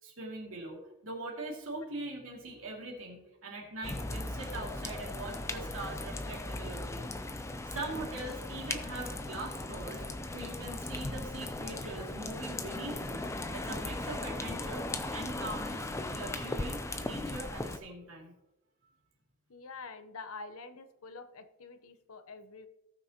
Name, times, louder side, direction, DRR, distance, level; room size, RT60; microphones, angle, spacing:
voice 1, 0.0-7.1 7.5-10.0 10.3-13.2 13.5-18.3, right 2 dB, 65° right, -1 dB, 2.6 m, -42 dB
sound 1, 3.8-17.8, left 2 dB, 15° left, 0.4 m, -38 dB
voice 2, 19.5-22.7, left 4 dB, 75° left, 10 dB, 0.8 m, -46 dB
18.0 x 6.1 x 2.9 m, 0.93 s
head